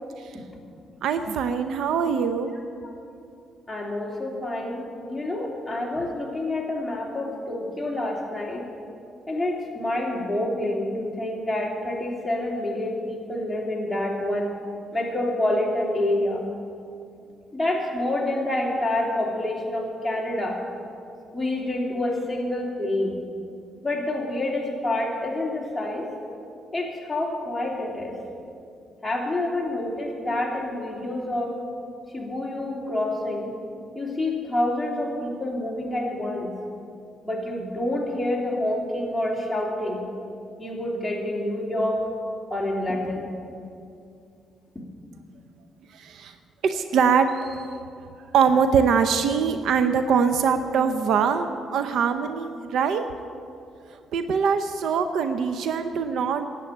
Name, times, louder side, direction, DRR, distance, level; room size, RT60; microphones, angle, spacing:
voice 1, 1.0-2.5 45.9-46.4 46.6-47.7 48.3-53.1 53.9-56.5, right 6 dB, 75° right, 9 dB, 0.6 m, -23 dB
voice 2, 3.7-8.6 9.3-14.5 14.9-16.4 17.5-20.6 21.3-23.2 23.8-26.0 26.7-28.1 29.0-31.6 32.1-33.5 33.9-36.5 37.2-40.0 40.6-42.1 42.5-43.3, left 1 dB, 10° left, -3 dB, 3.0 m, -27 dB
11.0 x 8.4 x 9.1 m, 2.5 s
cardioid pair, 90°, 0 cm